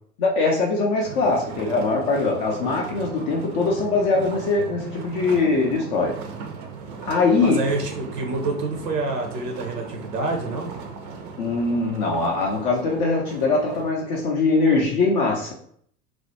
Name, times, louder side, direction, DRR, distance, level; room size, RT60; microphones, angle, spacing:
voice 1, 0.2-6.2 7.1-7.6 11.4-15.5, left 3 dB, 30° left, -1 dB, 0.4 m, -22 dB
sound 1, 1.0-13.9, right 5 dB, 45° right, 0.5 m, -38 dB
voice 2, 7.4-10.7, right 2 dB, 85° right, 2 dB, 0.7 m, -27 dB
2.3 x 2.1 x 2.7 m, 0.62 s
figure-of-eight pair, 85°, 47 cm